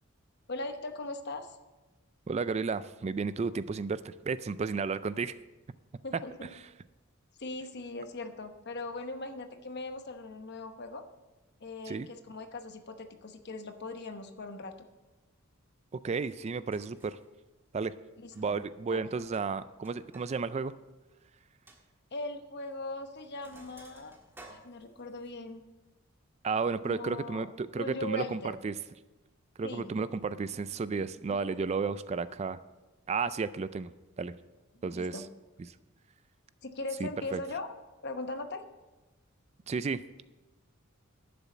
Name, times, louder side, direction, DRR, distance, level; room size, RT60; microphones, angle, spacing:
voice 1, 0.5-1.6 6.0-6.5 7.4-11.0 11.6-14.7 18.2-18.6 18.9-19.0 22.1-24.2 24.5-25.6 26.8-27.5 27.7-28.6 29.6-29.9 31.3-31.6 34.7-35.3 36.6-37.7 38.0-38.6, left 2 dB, 50° left, 8 dB, 0.9 m, -40 dB
voice 2, 2.3-5.3 11.9-12.1 15.9-17.2 17.7-17.9 18.4-20.7 26.4-28.8 29.6-32.6 33.1-34.3 34.8-35.2 37.0-37.4 39.7-40.2, right 4 dB, 30° right, 15 dB, 0.3 m, -33 dB
Sink (filling or washing), 16.3-16.4 16.7-17.2 18.2-18.6 18.9-20.3 20.6-20.7 21.1-21.2 21.7-21.8 22.7-22.9 23.1-25.3, right 2 dB, 10° right, 1.6 m, -56 dB
11.5 x 7.0 x 7.2 m, 1.1 s
head